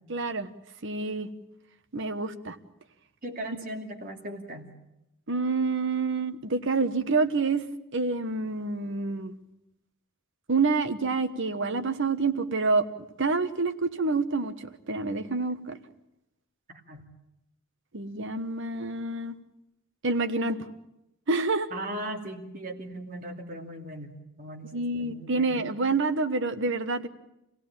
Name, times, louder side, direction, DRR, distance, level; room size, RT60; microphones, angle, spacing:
voice 1, 0.1-0.5 0.8-1.3 1.9-2.6 5.3-7.6 7.9-9.3 10.5-12.8 13.2-15.8 17.9-19.4 20.0-20.6 21.3-21.7 24.7-27.1, right 3 dB, 60° right, 10 dB, 1.2 m, -27 dB
voice 2, 3.2-4.7 16.7-17.1 21.7-25.6, right 1 dB, 40° right, 2 dB, 2.7 m, -38 dB
26.5 x 17.0 x 8.9 m, 0.89 s
head